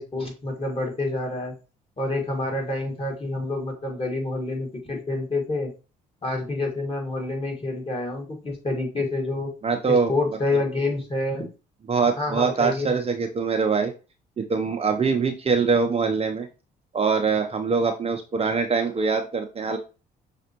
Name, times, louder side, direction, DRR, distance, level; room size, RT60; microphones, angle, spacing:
voice 1, 0.0-1.5 2.0-5.7 6.2-9.5 9.9-11.4 12.2-12.9, left 2 dB, 25° left, 1 dB, 1.8 m, -28 dB
voice 2, 9.6-10.1 11.9-13.9 14.4-16.5 16.9-19.8, right 5 dB, 30° right, 4 dB, 0.6 m, -23 dB
5.9 x 2.5 x 2.9 m, 0.32 s
hypercardioid pair, 55°, 21 cm